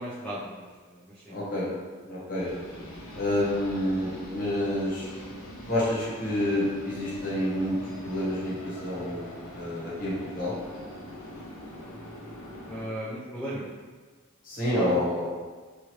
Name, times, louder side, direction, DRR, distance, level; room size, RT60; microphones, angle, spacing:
voice 1, 0.0-1.4 12.6-13.7 14.7-14.9, equal, 5° left, -8 dB, 0.4 m, -36 dB
voice 2, 1.3-1.7 2.0-2.5 3.1-5.1 5.7-10.5 14.4-15.3, left 1 dB, 40° left, -8 dB, 1.0 m, -28 dB
sound 1, 2.4-12.8, equal, 65° left, 0.7 m, -43 dB
2.9 x 2.5 x 3.0 m, 1.4 s
head